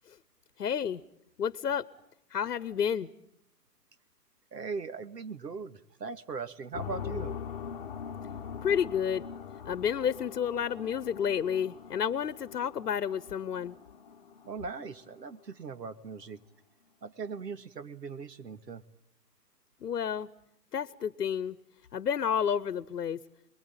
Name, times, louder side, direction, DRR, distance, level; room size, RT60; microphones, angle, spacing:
voice 1, 0.6-1.0 1.4-1.9 2.3-3.1 8.6-9.2 9.6-13.7 19.8-20.3 20.7-21.5 21.9-23.2, left 8 dB, 75° left, 18 dB, 1.0 m, -30 dB
voice 2, 4.5-7.4 14.5-16.4 17.0-18.8, right 5 dB, 80° right, 11 dB, 2.0 m, -39 dB
sound 1, 6.7-15.4, left 7 dB, 35° left, 1.1 m, -42 dB
26.5 x 22.0 x 8.9 m, 0.75 s
hypercardioid pair, 160°, 48 cm